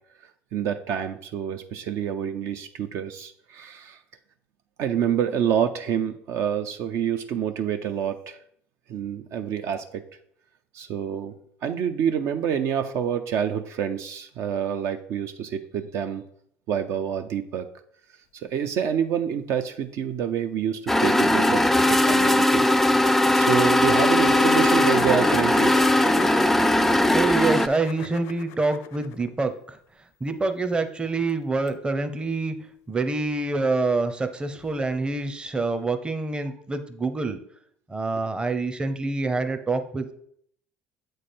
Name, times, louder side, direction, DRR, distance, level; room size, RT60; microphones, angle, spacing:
voice 1, 0.5-4.0 4.8-8.4 8.9-10.0 10.7-11.3 11.6-16.2 16.7-17.7 18.4-22.7 23.3-25.7, right 8 dB, 65° right, 8 dB, 0.5 m, -27 dB
sound 1, 20.9-27.7, left 1 dB, 5° left, 0.3 m, -19 dB
sound 2, 22.5-22.6 22.8-22.9 23.2-23.3 23.9-29.3 31.7-31.8 34.6-34.7, left 8 dB, 75° left, 0.5 m, -35 dB
voice 2, 27.1-29.8 30.2-32.6 32.9-37.4 37.9-40.1, right 3 dB, 20° right, 9 dB, 0.7 m, -26 dB
7.6 x 3.2 x 4.2 m, 0.65 s
supercardioid pair, 80°, 5 cm